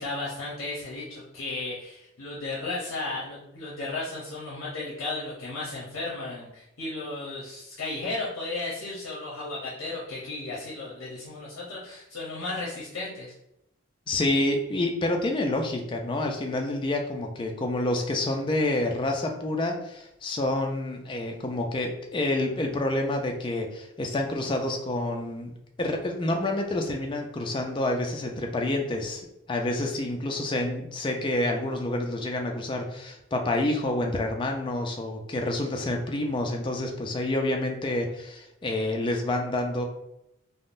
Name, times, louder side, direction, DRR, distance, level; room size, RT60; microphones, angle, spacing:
voice 1, 0.0-13.3, left 2 dB, 80° left, -6 dB, 0.6 m, -34 dB
voice 2, 14.1-25.5 25.8-39.8, left 1 dB, 25° left, 3 dB, 0.3 m, -28 dB
3.5 x 2.0 x 2.5 m, 0.84 s
head